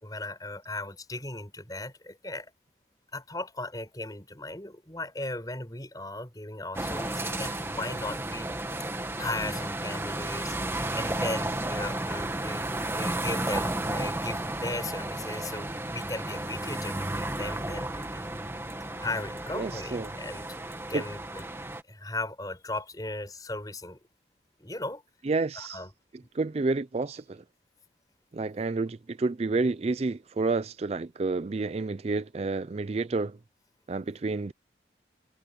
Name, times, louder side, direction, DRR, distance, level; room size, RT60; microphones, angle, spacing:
voice 1, 0.0-2.5 3.1-8.5 9.2-12.6 12.9-18.3 19.0-21.5 21.9-24.0 24.6-25.0 25.6-25.9, left 2 dB, 20° left, 5.1 m, -37 dB
sound 1, 6.7-21.8, right 1 dB, 15° right, 1.6 m, -33 dB
voice 2, 19.5-20.1 20.9-21.0 25.2-25.8 26.3-27.4 28.3-33.4 33.9-34.5, right 3 dB, 35° right, 0.4 m, -29 dB
head